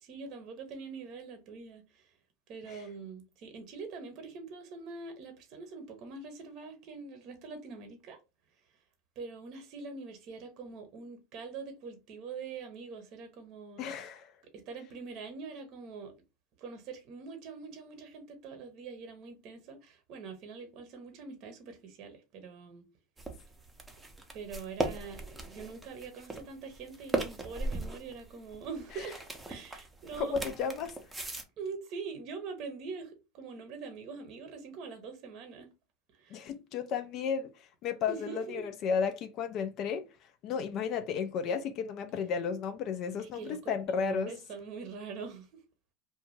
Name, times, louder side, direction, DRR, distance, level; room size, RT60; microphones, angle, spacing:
voice 1, 0.0-2.1 2.5-8.2 9.2-13.8 14.5-16.1 16.6-22.8 24.3-29.2 29.5-30.4 31.6-35.7 36.1-36.5 38.1-38.7 43.2-45.6, right 5 dB, 50° right, 0.7 m, -44 dB
voice 2, 13.8-14.3 30.2-31.0 36.3-40.1 40.4-44.3, left 6 dB, 45° left, 0.3 m, -33 dB
sound 1, 23.2-31.4, right 2 dB, 10° right, 0.6 m, -38 dB
2.5 x 2.2 x 3.0 m
supercardioid pair, 120°, 0 cm